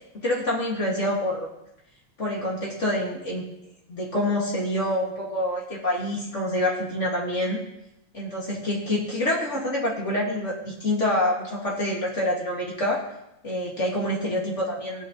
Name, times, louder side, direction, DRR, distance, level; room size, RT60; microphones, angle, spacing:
voice 1, 0.2-1.5 2.2-3.4 3.9-7.6 8.1-13.1 13.4-15.1, left 1 dB, 35° left, -3 dB, 2.2 m, -26 dB
18.5 x 8.6 x 3.0 m, 0.86 s
omnidirectional pair, 2.2 m